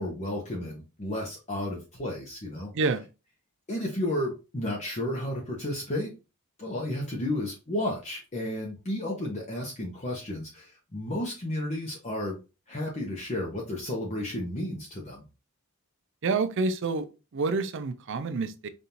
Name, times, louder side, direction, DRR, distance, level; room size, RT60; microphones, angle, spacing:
voice 1, 0.0-2.7 3.7-6.1 6.6-12.4 12.7-15.2, left 1 dB, 30° left, 0.8 m, -32 dB
voice 2, 16.2-18.7, right 4 dB, 55° right, 0.4 m, -28 dB
5.2 x 2.6 x 2.8 m
head